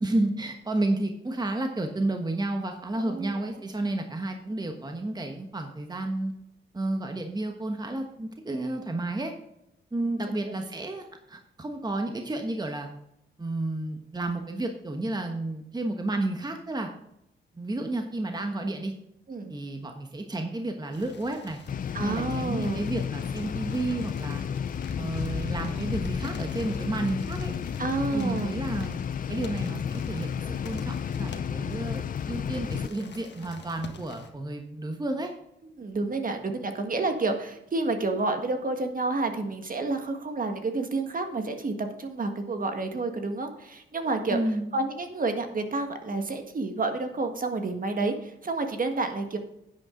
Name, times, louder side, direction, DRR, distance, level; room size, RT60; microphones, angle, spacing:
voice 1, 0.0-6.3 6.7-9.3 9.9-12.9 13.4-16.9 17.5-18.9 19.5-21.6 22.0-24.4 25.0-27.5 28.1-29.0 29.3-35.3 44.3-44.7, right 2 dB, 20° right, 4 dB, 1.2 m, -31 dB
voice 2, 2.9-3.3 10.5-10.6 19.3-19.6 21.9-22.9 27.8-28.6 35.8-44.4 44.7-49.4, right 3 dB, 45° right, 6 dB, 1.6 m, -29 dB
sound 1, 20.9-34.3, left 4 dB, 60° left, 1.6 m, -43 dB
sound 2, 21.7-32.9, left 8 dB, 45° left, 0.4 m, -32 dB
10.5 x 8.4 x 3.8 m, 0.81 s
cardioid pair, 85°, 20 cm